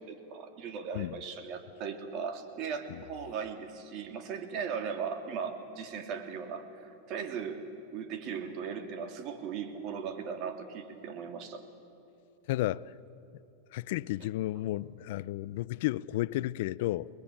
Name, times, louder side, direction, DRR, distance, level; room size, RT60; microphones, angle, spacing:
voice 1, 0.0-7.6 7.9-11.6 14.2-14.3, right 6 dB, 45° right, 3.0 m, -38 dB
voice 2, 12.5-12.9 13.7-17.1, left 16 dB, 65° left, 0.6 m, -32 dB
29.5 x 20.5 x 8.8 m
supercardioid pair, 130°, 0 cm